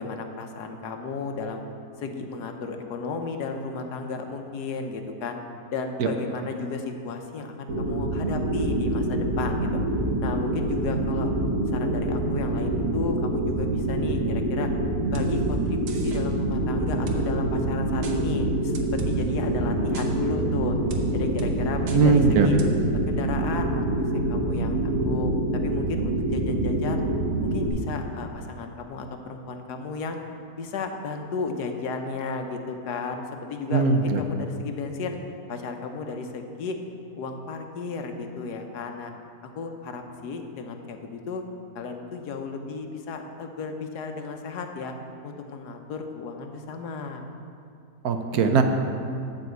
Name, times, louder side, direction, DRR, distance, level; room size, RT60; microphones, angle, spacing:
voice 1, 0.0-1.6 2.0-5.4 5.7-9.8 10.2-11.3 11.7-14.7 15.1-20.8 21.1-22.6 23.1-23.9 24.1-27.0 27.4-30.2 30.5-35.2 35.5-36.8 37.1-39.1 39.4-41.4 41.7-44.9 45.2-47.2, left 4 dB, 80° left, 5 dB, 1.4 m, -34 dB
sound 1, 7.7-27.7, right 1 dB, 55° right, 1.5 m, -26 dB
sound 2, 15.1-15.3 15.9-16.2 17.1-17.2 18.0-18.2 18.7-19.1 19.9-20.1 20.9-21.0 21.4-21.5 21.9-22.0 22.6-22.7, right 4 dB, 85° right, 1.5 m, -33 dB
voice 2, 21.9-22.6 33.7-34.2 48.0-48.6, right 4 dB, 70° right, 6 dB, 1.2 m, -20 dB
12.0 x 4.2 x 8.0 m, 2.5 s
omnidirectional pair, 1.7 m